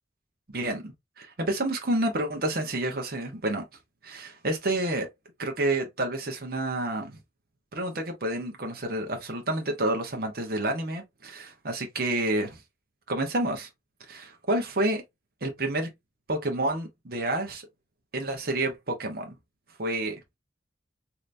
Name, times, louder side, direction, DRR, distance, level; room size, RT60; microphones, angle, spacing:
voice 1, 0.5-3.6 4.0-5.1 5.4-7.2 7.7-12.6 13.1-13.7 14.1-15.0 15.4-15.9 16.3-17.6 18.1-19.4 19.8-20.1, right 1 dB, 55° right, 0.9 m, -29 dB
3.3 x 2.8 x 2.5 m
head